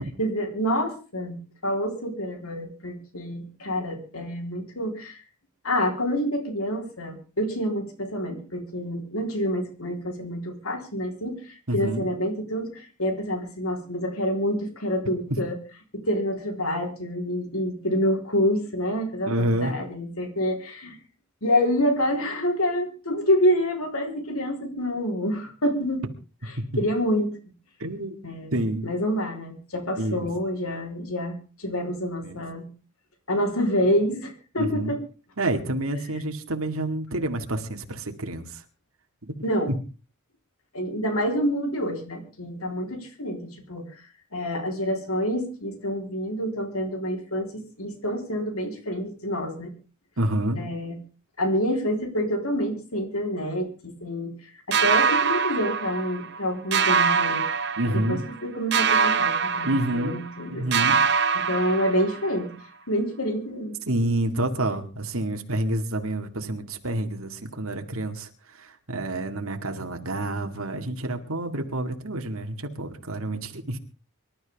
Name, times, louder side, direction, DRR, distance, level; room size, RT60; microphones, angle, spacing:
voice 1, 0.2-5.2 5.6-15.5 15.9-21.0 21.4-26.0 26.8-27.4 28.2-32.7 33.3-35.0 39.4-39.7 40.7-44.0 44.3-49.7 50.6-51.0 51.4-54.3 54.7-57.5 57.8-60.7 61.5-62.5 62.9-63.8, equal, 85° left, 3 dB, 3.8 m, -27 dB
voice 2, 11.7-12.1 15.3-15.4 19.3-19.7 27.8-28.1 28.5-28.9 30.0-30.3 32.2-32.4 34.6-34.9 35.4-38.6 39.3-39.4 50.2-50.6 57.8-58.3 59.6-60.2 60.5-61.0 63.9-73.8, right 1 dB, 75° right, 5 dB, 2.1 m, -28 dB
sound 1, 54.7-56.4 56.7-58.4 58.7-60.4 60.7-62.4, right 6 dB, 50° right, 0.9 m, -24 dB
25.0 x 12.5 x 3.5 m, 0.35 s
head